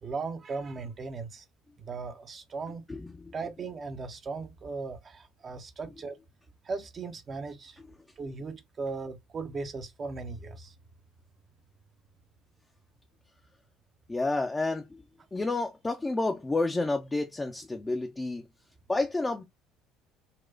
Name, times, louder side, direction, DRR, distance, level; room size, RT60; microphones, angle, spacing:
voice 1, 0.0-1.5 1.8-2.9 3.3-6.2 6.6-7.8 8.2-10.7, right 4 dB, 35° right, 0.6 m, -37 dB
voice 2, 2.9-3.3 14.1-15.0 15.3-18.5 18.9-19.4, left 2 dB, 20° left, 0.5 m, -30 dB
4.1 x 2.2 x 2.4 m
figure-of-eight pair, 55°, 0 cm